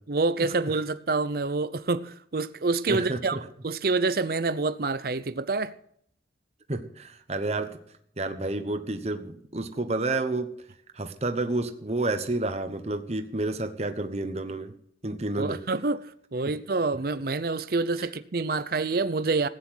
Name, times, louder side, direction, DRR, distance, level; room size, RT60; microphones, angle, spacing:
voice 1, 0.1-3.4 3.6-5.8 15.4-19.5, right 3 dB, 55° right, 0.6 m, -27 dB
voice 2, 2.9-3.4 6.7-7.8 8.2-10.5 10.9-14.7 15.0-15.6 16.5-16.6 18.0-18.1, right 2 dB, 35° right, 1.0 m, -30 dB
15.5 x 9.6 x 6.2 m
head